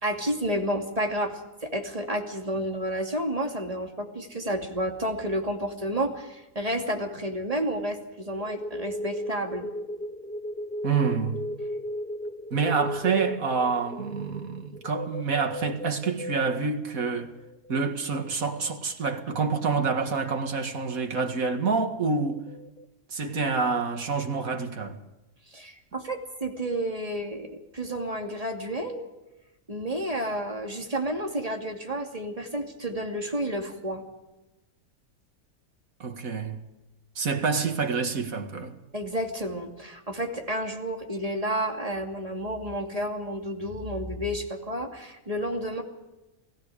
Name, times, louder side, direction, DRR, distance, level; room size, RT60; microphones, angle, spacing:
voice 1, 0.0-9.7 25.5-29.0 29.7-34.0 38.9-45.8, right 1 dB, 25° right, 2.7 m, -31 dB
sound 1, 8.3-16.6 17.1-20.0 20.4-22.8, equal, 10° left, 0.7 m, -37 dB
voice 2, 10.8-11.4 12.5-17.3 17.7-22.5 23.1-25.0 36.0-36.6 37.2-38.8, right 5 dB, 70° right, 2.3 m, -27 dB
29.0 x 18.5 x 5.0 m
omnidirectional pair, 1.5 m